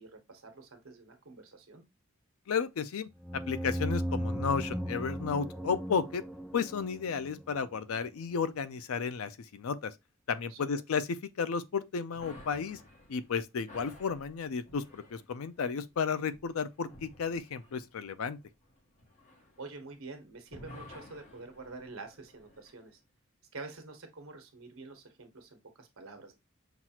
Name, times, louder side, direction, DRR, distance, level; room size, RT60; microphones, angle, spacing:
voice 1, 0.0-1.8 10.5-10.7 19.6-23.0 23.5-26.3, right 3 dB, 75° right, 1.1 m, -47 dB
voice 2, 2.5-6.2 6.5-9.9 10.3-11.1 11.4-12.8 13.1-18.4, left 6 dB, 85° left, 0.4 m, -33 dB
sound 1, 3.2-7.8, equal, ahead, 0.4 m, -36 dB
sound 2, 12.1-20.2 20.5-22.8, left 1 dB, 35° left, 1.1 m, -54 dB
5.9 x 2.4 x 2.8 m
head